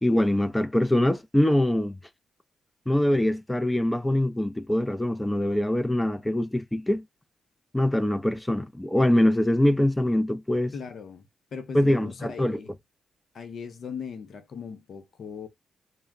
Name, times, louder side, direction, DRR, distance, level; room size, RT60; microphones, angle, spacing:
voice 1, 0.0-2.0 2.9-7.0 7.7-10.7 11.7-12.6, left 1 dB, 10° left, 0.5 m, -23 dB
voice 2, 10.7-12.7 13.3-15.5, left 6 dB, 60° left, 0.7 m, -39 dB
2.2 x 2.1 x 3.6 m
hypercardioid pair, 45°, 0 cm